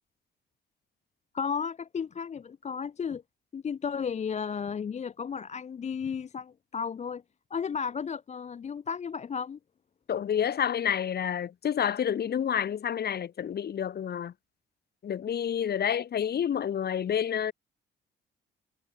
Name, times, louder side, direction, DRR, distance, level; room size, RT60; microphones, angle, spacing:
voice 1, 1.3-3.2 3.5-7.2 7.5-9.6, left 6 dB, 35° left, 0.6 m, -33 dB
voice 2, 10.1-14.3 15.0-17.5, left 9 dB, 55° left, 1.6 m, -29 dB
cardioid pair, 90°, 20 cm